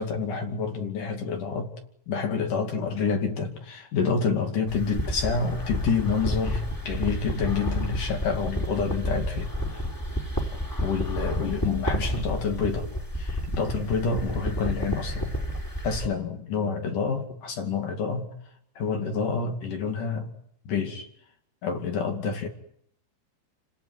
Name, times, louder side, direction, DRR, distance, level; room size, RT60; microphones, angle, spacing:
voice 1, 0.0-1.7 2.1-9.9 10.8-12.9 13.1-15.4 15.8-18.3 18.8-20.3 20.7-21.1 21.6-22.5, left 5 dB, 50° left, 4 dB, 3.7 m, -28 dB
sound 1, 4.7-16.1, equal, 5° left, 3.6 m, -30 dB
30.0 x 18.5 x 9.5 m, 0.71 s
omnidirectional pair, 5.2 m